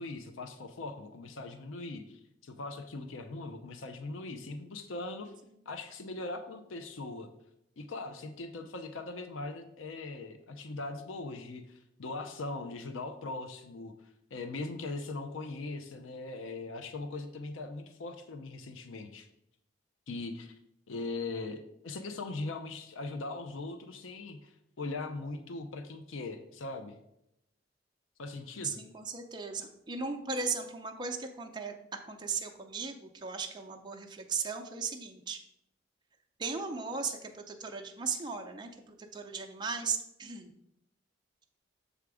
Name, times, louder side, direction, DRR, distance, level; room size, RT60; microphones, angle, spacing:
voice 1, 0.0-5.3 5.7-7.3 7.8-13.9 14.3-19.3 20.1-20.5 20.9-26.9 28.2-28.8, left 3 dB, 85° left, 8 dB, 0.6 m, -40 dB
voice 2, 28.6-31.7 32.1-35.4 36.4-40.5, right 5 dB, 25° right, 3 dB, 0.5 m, -37 dB
6.8 x 3.5 x 4.8 m, 0.79 s
head